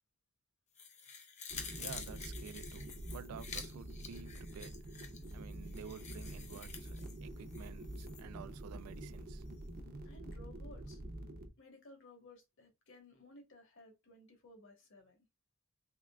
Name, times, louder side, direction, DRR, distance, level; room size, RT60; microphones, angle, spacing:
sound 1, 0.8-8.2 8.6-8.7, left 6 dB, 30° left, 0.6 m, -49 dB
sound 2, 1.5-11.5, right 1 dB, 45° right, 0.6 m, -47 dB
voice 1, 1.8-4.7 5.3-9.4, right 7 dB, 90° right, 0.3 m, -51 dB
voice 2, 10.0-11.0 11.6-15.2, left 1 dB, 60° left, 1.2 m, -58 dB
3.6 x 3.1 x 2.2 m
head